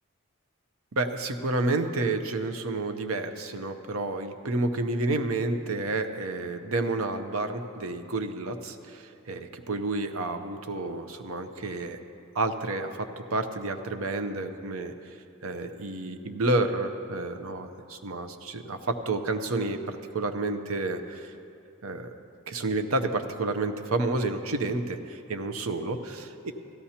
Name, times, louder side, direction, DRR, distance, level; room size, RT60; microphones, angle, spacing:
voice 1, 1.0-12.0 12.3-14.9 15.4-21.3 21.8-22.1 22.5-26.5, right 2 dB, 80° right, 7 dB, 0.7 m, -30 dB
16.5 x 14.0 x 2.9 m, 2.6 s
head